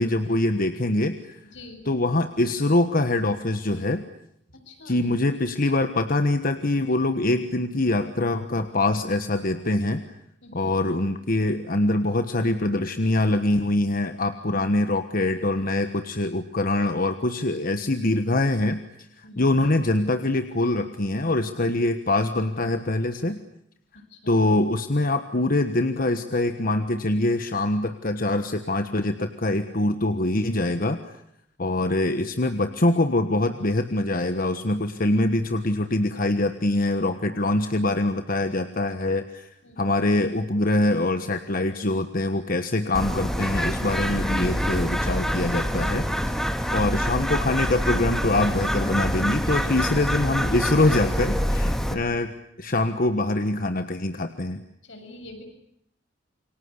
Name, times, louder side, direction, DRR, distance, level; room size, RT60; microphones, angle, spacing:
voice 1, 0.0-1.4 1.9-4.0 4.8-10.0 10.5-18.8 19.2-23.4 24.3-31.2 31.6-39.5 39.8-46.1 46.7-52.3 52.6-54.6, left 2 dB, 50° left, 9 dB, 1.4 m, -24 dB
voice 2, 1.5-1.8 4.5-5.0 10.4-10.7 19.2-19.5 23.9-24.4 39.6-39.9 49.5-49.9 54.8-55.4, left 2 dB, 80° left, 5 dB, 7.3 m, -45 dB
Bird, 42.9-51.9, equal, ahead, 2.5 m, -26 dB
28.5 x 24.0 x 8.4 m, 0.73 s
head